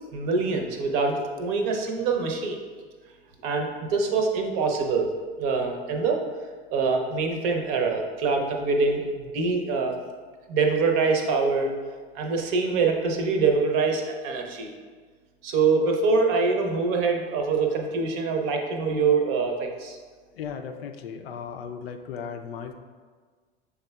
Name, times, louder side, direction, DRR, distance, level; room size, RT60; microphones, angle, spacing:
voice 1, 0.1-2.6 3.4-5.1 5.4-6.2 6.7-9.9 10.5-11.7 12.1-14.7 15.4-20.0, right 4 dB, 45° right, 3 dB, 0.7 m, -24 dB
voice 2, 20.3-22.7, left 7 dB, 65° left, 5 dB, 0.5 m, -36 dB
6.5 x 3.4 x 2.2 m, 1.5 s
figure-of-eight pair, 80°, 32 cm